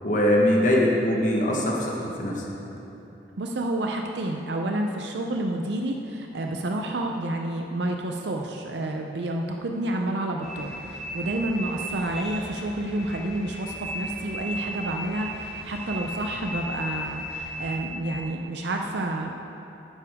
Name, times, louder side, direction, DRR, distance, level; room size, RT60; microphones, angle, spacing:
voice 1, 0.0-2.4, left 1 dB, 45° left, -2 dB, 1.2 m, -22 dB
voice 2, 3.4-19.4, right 1 dB, 75° right, 2 dB, 0.6 m, -29 dB
sound 1, 10.4-17.8, equal, ahead, 2.0 m, -36 dB
12.0 x 9.4 x 3.6 m, 2.9 s
head